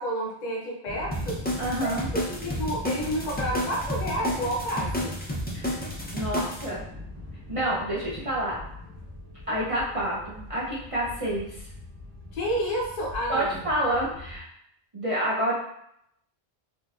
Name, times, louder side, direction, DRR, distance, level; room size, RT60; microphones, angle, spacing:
voice 1, 0.0-1.4 1.8-5.2 12.3-13.7, equal, 45° left, -2 dB, 0.8 m, -30 dB
sound 1, 0.9-14.4, left 1 dB, 60° right, 1.8 m, -41 dB
sound 2, 1.1-6.7, equal, 15° left, 0.3 m, -31 dB
voice 2, 1.6-2.1 5.5-5.7 6.1-6.8 7.5-8.6 9.5-11.7 13.3-14.4 14.9-15.5, right 1 dB, 35° right, -7 dB, 0.7 m, -28 dB
3.9 x 2.7 x 2.4 m, 0.74 s
omnidirectional pair, 1.1 m